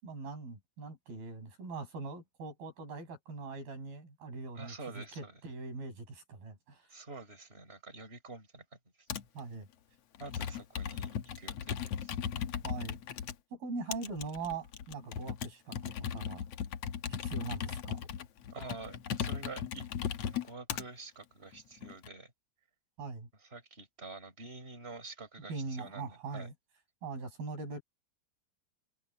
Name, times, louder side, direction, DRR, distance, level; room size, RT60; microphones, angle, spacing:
voice 1, 0.0-6.9 9.3-9.7 12.6-13.0 13.5-16.5 17.2-18.1 23.0-23.3 25.5-26.5 27.0-27.8, right 4 dB, 85° right, 9.1 m, -41 dB
voice 2, 4.5-5.4 6.9-8.6 10.2-12.2 18.5-19.9 20.2-22.3 23.5-26.5, right 3 dB, 15° right, 6.1 m, -47 dB
Computer keyboard, 9.1-9.4 10.1-13.3 13.9-20.9 21.5-22.1, left 8 dB, 60° left, 1.8 m, -37 dB
omnidirectional pair, 4.1 m